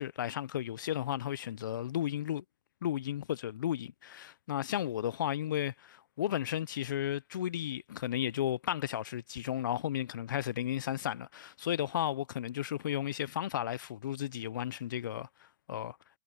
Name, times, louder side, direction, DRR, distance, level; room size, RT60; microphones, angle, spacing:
voice 1, 0.0-2.4 2.8-16.0, left 11 dB, 65° left, 0.6 m, -34 dB
hypercardioid pair, 145°, 11 cm